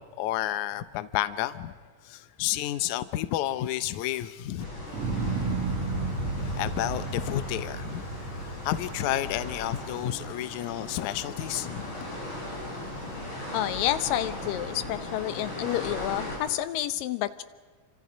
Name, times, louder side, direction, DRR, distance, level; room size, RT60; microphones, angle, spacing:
voice 1, 0.0-1.8 2.0-4.7 6.4-11.9, left 13 dB, 70° left, 2.1 m, -31 dB
sound 1, 4.6-16.4, left 1 dB, 35° left, 6.0 m, -38 dB
sound 2, 4.9-11.3 11.7-12.3, right 3 dB, 50° right, 2.6 m, -33 dB
voice 2, 13.5-17.4, left 13 dB, 90° left, 2.6 m, -29 dB
29.5 x 26.0 x 5.2 m
omnidirectional pair, 3.8 m